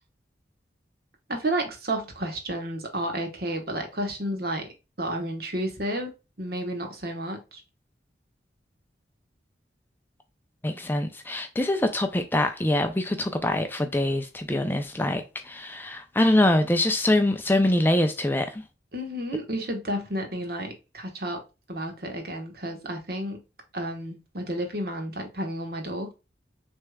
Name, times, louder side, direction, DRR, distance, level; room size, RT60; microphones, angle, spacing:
voice 1, 1.3-4.7 5.0-6.1 6.4-7.6 18.9-21.4 21.7-23.4 23.7-26.1, right 1 dB, 55° right, 1.3 m, -31 dB
voice 2, 10.6-18.6, left 1 dB, 10° left, 0.4 m, -24 dB
6.4 x 3.4 x 2.3 m
head